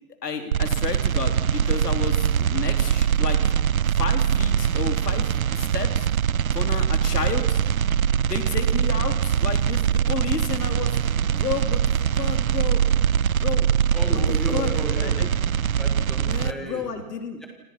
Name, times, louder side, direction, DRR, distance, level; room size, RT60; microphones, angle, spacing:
voice 1, 0.2-3.5 4.0-6.1 6.5-7.6 8.3-11.0 11.3-12.8 13.4-13.7 14.1-14.2 14.5-15.3 16.2-17.4, left 5 dB, 80° left, 5 dB, 3.5 m, -31 dB
sound 1, 0.5-16.5, right 8 dB, 60° right, 0.7 m, -22 dB
voice 2, 13.9-15.2 15.8-16.9 17.4-17.5, equal, ahead, 2 dB, 1.8 m, -33 dB
28.5 x 27.0 x 5.9 m, 1.1 s
hypercardioid pair, 175°, 47 cm